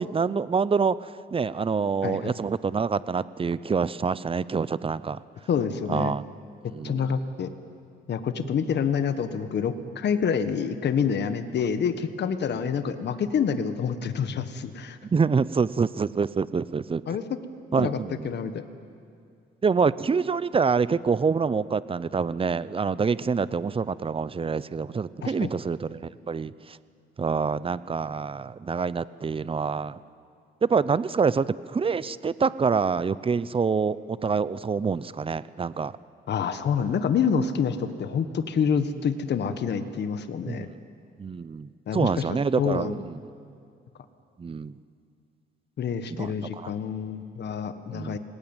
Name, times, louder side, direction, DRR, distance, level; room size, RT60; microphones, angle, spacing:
voice 1, 0.0-5.2 5.9-6.2 6.7-7.1 8.4-8.5 12.5-12.7 15.1-17.0 17.7-18.3 19.6-26.8 27.2-30.0 30.6-36.0 40.5-40.7 41.2-43.2 44.4-44.8 46.1-46.7 47.9-48.2, right 5 dB, 25° right, 17 dB, 0.7 m, -26 dB
voice 2, 2.0-2.3 5.5-6.1 6.8-7.5 8.1-15.0 17.1-17.2 17.8-18.0 18.2-18.7 25.2-25.5 36.3-40.7 41.9-42.2 42.6-42.9 45.8-48.2, left 7 dB, 60° left, 10 dB, 1.5 m, -27 dB
28.0 x 19.5 x 9.0 m, 2.4 s
cardioid pair, 90°, 20 cm